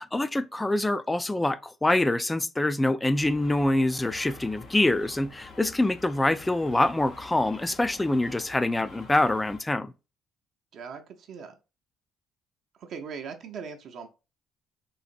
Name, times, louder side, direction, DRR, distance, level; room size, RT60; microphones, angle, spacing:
voice 1, 0.0-9.9, left 2 dB, 15° left, 0.4 m, -25 dB
sound 1, 3.1-9.6, left 4 dB, 60° left, 0.8 m, -47 dB
voice 2, 10.7-11.5 12.7-14.1, right 6 dB, 60° right, 0.5 m, -40 dB
3.9 x 2.5 x 2.5 m
hypercardioid pair, 50°, 0 cm